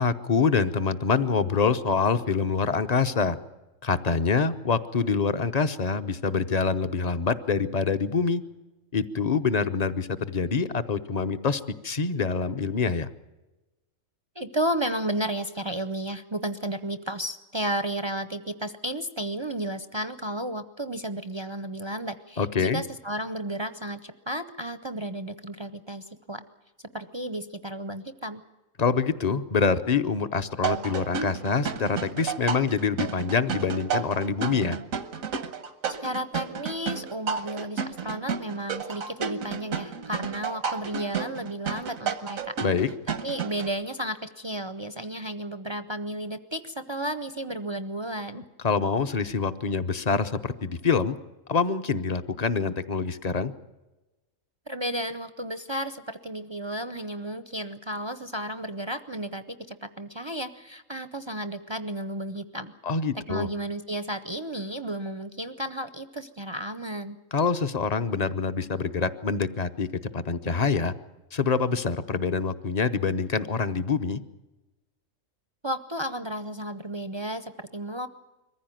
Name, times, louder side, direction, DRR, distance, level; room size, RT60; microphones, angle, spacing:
voice 1, 0.0-3.4 3.8-8.4 8.9-13.1 22.4-22.8 28.8-34.8 42.6-42.9 48.3-51.2 51.5-53.5 62.8-63.5 67.3-69.9 70.1-70.9 71.3-74.2, left 5 dB, 35° left, 11 dB, 0.8 m, -25 dB
voice 2, 14.4-26.4 26.9-28.4 36.0-42.5 43.2-48.4 54.7-62.7 63.3-67.2 75.6-78.1, right 1 dB, 30° right, 11 dB, 0.6 m, -33 dB
sound 1, 30.6-43.7, right 6 dB, 85° right, 1.5 m, -32 dB
22.5 x 15.0 x 9.2 m, 1.1 s
omnidirectional pair, 1.4 m